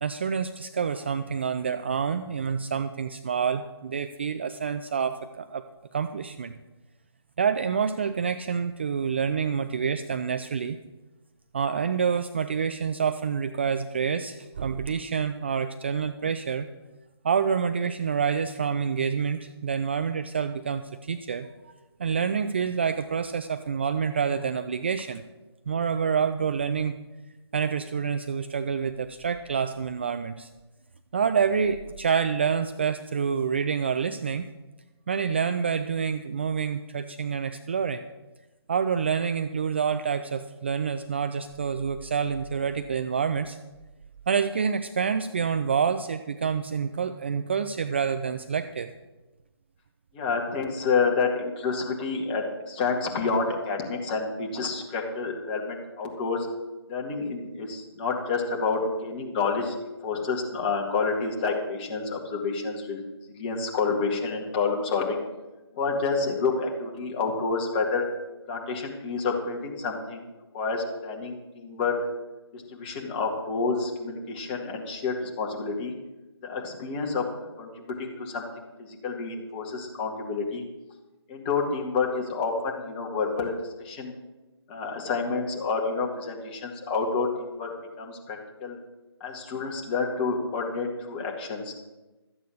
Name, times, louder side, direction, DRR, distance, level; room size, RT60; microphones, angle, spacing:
voice 1, 0.0-5.7 5.9-6.5 7.4-10.8 11.5-16.7 17.2-21.7 22.0-25.2 25.7-27.0 27.5-30.5 31.1-34.5 35.1-38.0 38.7-43.6 44.3-48.9, right 6 dB, 25° right, 9 dB, 0.3 m, -27 dB
voice 2, 50.1-56.5 56.9-59.7 60.0-63.0 63.4-65.2 65.8-68.1 68.5-70.3 70.5-72.0 72.5-75.9 76.4-78.5 78.8-80.6 81.3-83.5 83.8-84.1 84.7-87.7 88.0-88.8 89.2-91.7, left 4 dB, 20° left, -1 dB, 2.0 m, -29 dB
13.5 x 8.3 x 6.5 m, 1.1 s
figure-of-eight pair, 150°, 14 cm